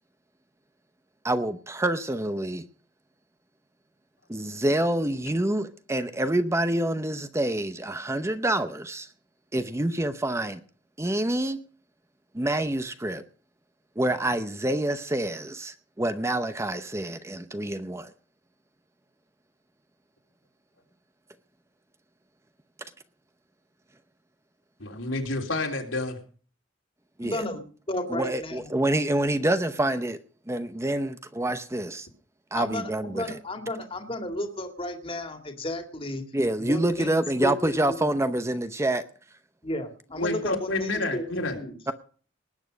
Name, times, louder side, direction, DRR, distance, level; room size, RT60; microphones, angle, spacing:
voice 1, 1.2-2.6 4.3-9.1 9.5-10.6 11.0-11.6 12.3-13.2 14.0-18.1 27.2-27.4 28.1-30.2 30.5-32.1 32.5-33.4 36.3-39.0 41.9-42.0, right 1 dB, 15° right, 0.8 m, -27 dB
voice 2, 24.8-26.2 40.2-41.6, left 2 dB, 75° left, 3.5 m, -29 dB
voice 3, 27.2-27.6 27.9-28.7 32.5-36.2 36.6-38.1 39.6-41.8, left 1 dB, 30° left, 2.2 m, -33 dB
19.5 x 8.8 x 5.2 m
head